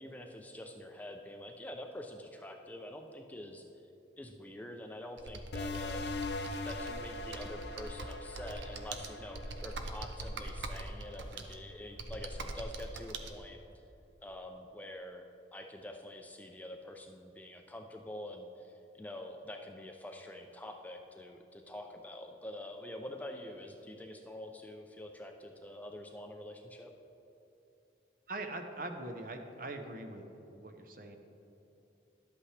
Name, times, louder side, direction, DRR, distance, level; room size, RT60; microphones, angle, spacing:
voice 1, 0.0-3.7 4.2-13.6 14.2-15.2 15.5-26.9, left 1 dB, 10° left, 3 dB, 0.4 m, -46 dB
Computer keyboard, 5.2-13.3, right 2 dB, 85° right, 0.7 m, -43 dB
sound 1, 5.5-10.7, left 3 dB, 75° left, 0.6 m, -41 dB
voice 2, 28.3-31.2, right 2 dB, 50° right, 5 dB, 0.7 m, -42 dB
11.5 x 8.4 x 3.3 m, 3.0 s
head